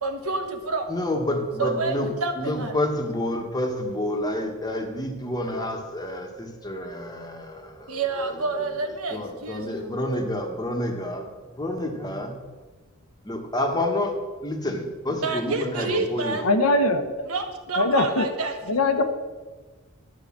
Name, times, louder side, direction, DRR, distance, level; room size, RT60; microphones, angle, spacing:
voice 1, 0.0-0.9 1.6-2.7 7.9-9.9 15.1-16.5 17.3-18.8, right 3 dB, 70° right, 5 dB, 1.2 m, -29 dB
voice 2, 0.9-2.1 2.4-8.0 9.1-11.3 11.6-12.3 13.2-14.1 14.4-16.7, left 1 dB, 20° left, 3 dB, 1.4 m, -29 dB
voice 3, 16.4-17.1 17.8-18.3 18.7-19.0, left 2 dB, 80° left, 7 dB, 1.0 m, -21 dB
11.5 x 4.9 x 7.4 m, 1.3 s
head